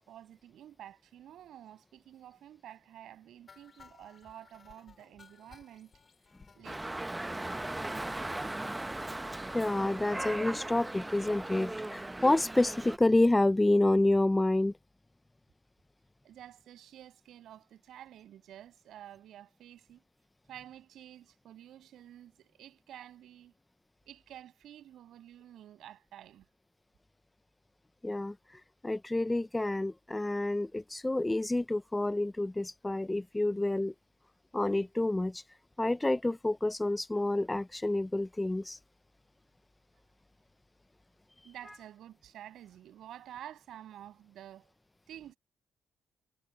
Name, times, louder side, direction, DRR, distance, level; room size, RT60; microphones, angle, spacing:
voice 1, 0.0-5.9 6.6-7.0 16.2-20.0 20.5-23.5 24.1-26.5 39.2-39.3 41.4-44.7 45.1-45.4, right 11 dB, 75° right, 6.9 m, -50 dB
sound 1, 3.5-7.8 8.2-8.3 8.6-8.7 8.9-9.1 9.4-9.5, left 5 dB, 40° left, 7.2 m, -59 dB
Dog, 6.6-13.0, right 1 dB, 10° right, 0.9 m, -38 dB
voice 2, 9.5-14.7 28.0-28.3 28.8-33.9 34.5-35.4 35.8-38.8, left 2 dB, 15° left, 0.7 m, -28 dB
cardioid pair, 90°, 0 cm